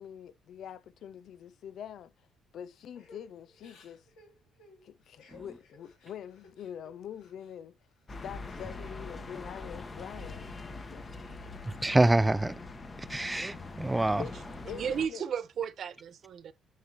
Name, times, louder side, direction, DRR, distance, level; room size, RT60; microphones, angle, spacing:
voice 1, 0.0-2.1 2.5-4.0 4.8-7.7 8.2-11.4 14.2-14.3 14.7-15.2, left 9 dB, 65° left, 0.5 m, -44 dB
Crying sobbing / Breathing, 2.9-7.6 7.9-8.9 9.3-10.1, left 2 dB, 85° left, 2.6 m, -59 dB
sound 1, 8.1-15.1, left 3 dB, 35° left, 1.1 m, -43 dB
voice 2, 11.7-12.5 13.1-14.2, right 2 dB, 15° right, 0.4 m, -26 dB
voice 3, 14.7-16.5, right 8 dB, 60° right, 0.7 m, -34 dB
9.4 x 3.7 x 2.9 m
supercardioid pair, 75°, 0 cm